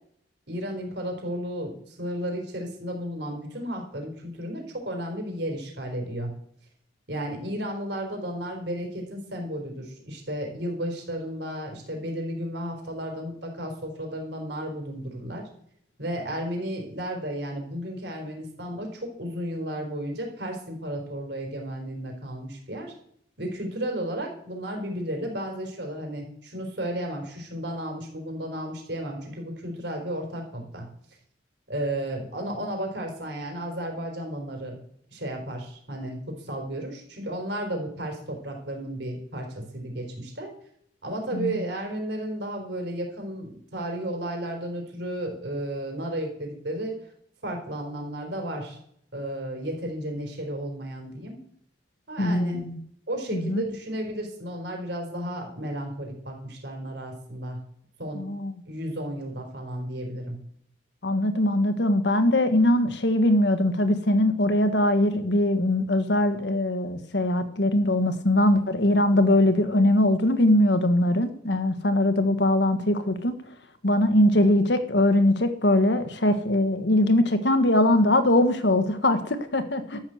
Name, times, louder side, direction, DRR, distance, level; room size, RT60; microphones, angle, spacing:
voice 1, 0.5-6.3 7.1-15.4 16.0-22.9 23.4-30.8 31.7-34.7 35.1-40.5 41.0-47.0 47.4-48.8 49.1-51.4 52.1-52.6 53.1-57.6 58.0-58.3 58.7-60.4, right 1 dB, 65° right, 2 dB, 4.4 m, -33 dB
voice 2, 41.3-41.6 52.2-52.8 53.3-53.6 58.1-58.5 61.0-73.3 73.8-80.0, left 1 dB, 70° left, 9 dB, 1.6 m, -21 dB
13.0 x 7.4 x 7.9 m, 0.68 s
head